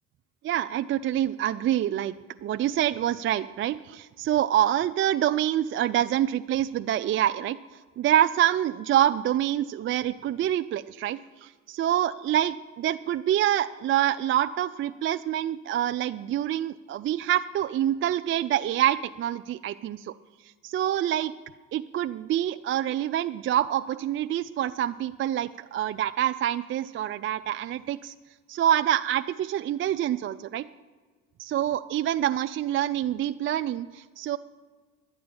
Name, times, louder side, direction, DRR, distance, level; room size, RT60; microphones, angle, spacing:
voice 1, 0.4-2.1 2.4-7.6 8.0-20.1 20.6-21.3 21.7-28.1 28.5-30.7 31.4-34.4, right 11 dB, 40° right, 10 dB, 0.4 m, -26 dB
11.0 x 8.2 x 8.7 m, 1.4 s
supercardioid pair, 85°, 32 cm